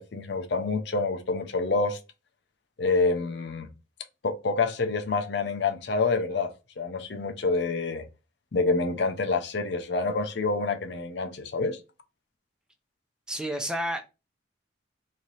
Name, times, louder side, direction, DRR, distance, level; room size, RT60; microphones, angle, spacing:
voice 1, 0.0-2.0 2.8-3.7 4.2-8.0 8.5-11.8, left 3 dB, 60° left, 0.6 m, -27 dB
voice 2, 13.3-14.0, equal, 5° right, 0.4 m, -30 dB
3.1 x 2.8 x 3.9 m
head